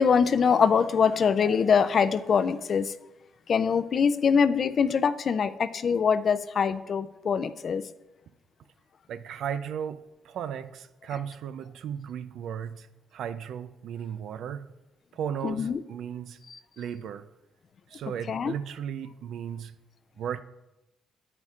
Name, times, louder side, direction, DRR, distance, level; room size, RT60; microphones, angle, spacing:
voice 1, 0.0-2.9 3.5-7.8 15.4-15.8 18.3-18.5, left 6 dB, 50° left, 0.4 m, -23 dB
voice 2, 9.1-12.9 13.1-14.7 15.1-16.4 16.8-17.2 17.9-19.7 20.2-20.4, right 8 dB, 75° right, 0.4 m, -35 dB
9.6 x 9.1 x 2.4 m
cardioid pair, 90°, 0 cm